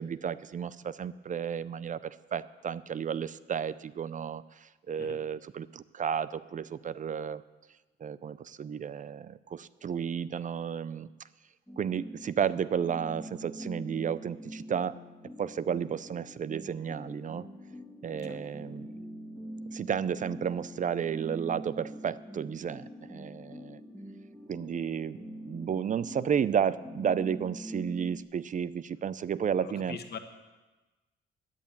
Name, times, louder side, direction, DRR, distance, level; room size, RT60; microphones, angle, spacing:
voice 1, 0.0-7.4 8.0-11.1 11.8-14.9 15.4-17.5 18.0-19.0 19.7-23.8 24.5-25.2 25.4-30.0, right 8 dB, 40° right, 17 dB, 0.5 m, -32 dB
sound 1, 11.7-28.2, equal, 5° left, 2.1 m, -44 dB
voice 2, 29.6-30.2, left 7 dB, 55° left, 7 dB, 1.5 m, -42 dB
11.0 x 9.2 x 8.7 m, 1.2 s
cardioid pair, 90°, 20 cm